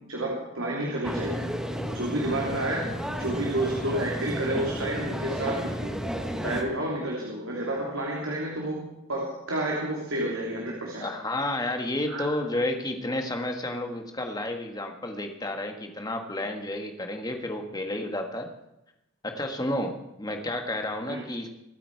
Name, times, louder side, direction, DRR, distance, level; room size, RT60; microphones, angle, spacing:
voice 1, 0.1-1.4 1.9-5.9 6.4-11.0 12.1-12.2 21.1-21.2, right 1 dB, 80° right, -2 dB, 3.1 m, -30 dB
sound 1, 1.0-6.6, equal, 5° right, 1.3 m, -32 dB
voice 2, 11.0-18.5 19.2-21.5, left 1 dB, 20° left, 4 dB, 1.7 m, -31 dB
24.0 x 9.2 x 4.8 m, 0.90 s
head